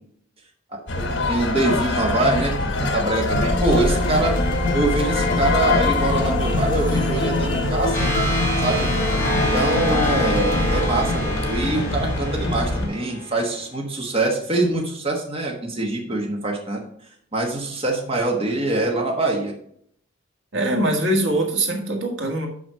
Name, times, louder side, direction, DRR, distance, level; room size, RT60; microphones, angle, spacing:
sound 1, 0.9-12.9, left 2 dB, 70° left, 1.2 m, -25 dB
voice 1, 0.9-2.5 2.9-4.3 4.7-8.1 8.6-8.9 9.5-16.8 17.3-19.5, right 2 dB, 30° right, 0 dB, 1.2 m, -24 dB
sound 2, 3.3-13.4, left 2 dB, 45° left, 1.7 m, -25 dB
sound 3, 7.9-13.5, equal, 15° left, 3.0 m, -27 dB
voice 2, 20.5-22.5, right 1 dB, 75° right, 2 dB, 1.7 m, -22 dB
6.1 x 6.1 x 5.5 m, 0.65 s
head